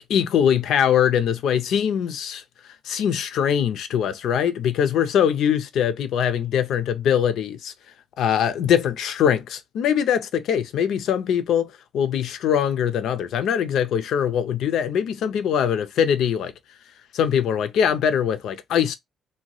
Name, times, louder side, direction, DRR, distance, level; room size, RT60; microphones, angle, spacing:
voice 1, 0.0-2.4 2.9-7.7 8.2-11.7 11.9-16.5 17.1-18.9, left 8 dB, 80° left, 0.4 m, -22 dB
2.7 x 2.2 x 3.0 m
cardioid pair, 90°, 0 cm